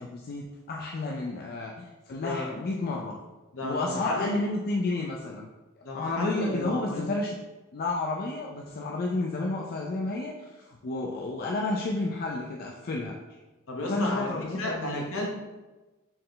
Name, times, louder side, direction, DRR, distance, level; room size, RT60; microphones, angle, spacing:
voice 1, 0.0-3.1 3.6-5.5 5.9-7.3 7.7-13.2 13.8-15.0, left 2 dB, 45° left, -1 dB, 0.4 m, -31 dB
voice 2, 3.5-4.3 5.8-7.1 13.7-15.3, left 1 dB, 65° left, -1 dB, 1.1 m, -33 dB
4.4 x 3.2 x 3.8 m, 1.2 s
head